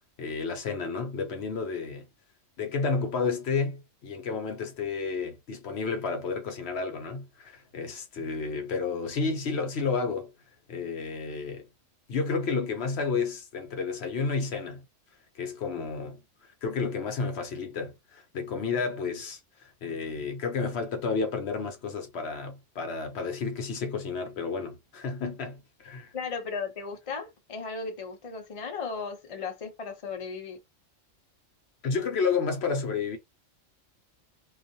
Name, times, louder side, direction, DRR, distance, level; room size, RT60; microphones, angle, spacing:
voice 1, 0.2-2.0 2.6-10.3 10.7-11.7 12.1-14.8 15.3-16.2 16.6-25.5 25.8-26.1 31.8-33.2, left 4 dB, 60° left, 0.9 m, -31 dB
voice 2, 26.1-30.6, left 5 dB, 40° left, 0.5 m, -36 dB
2.4 x 2.4 x 2.6 m
omnidirectional pair, 1.3 m